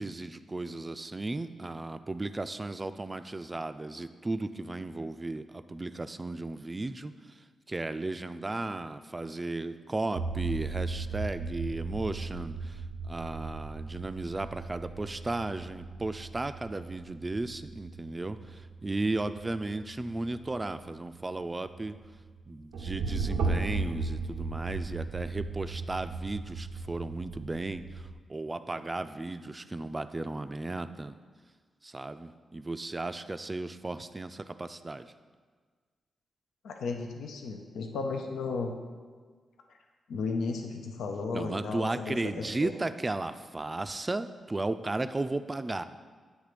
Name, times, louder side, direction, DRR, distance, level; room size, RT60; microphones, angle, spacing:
voice 1, 0.0-7.1 7.7-12.7 13.1-22.0 22.5-27.8 28.3-31.1 31.8-35.1 41.3-45.8, right 2 dB, 30° right, 11 dB, 0.3 m, -35 dB
sound 1, 10.1-28.1, right 4 dB, 85° right, 0.5 m, -37 dB
voice 2, 36.6-38.7 40.1-42.7, left 4 dB, 80° left, 3 dB, 0.4 m, -34 dB
8.0 x 3.2 x 5.0 m, 1.5 s
supercardioid pair, 45°, 0 cm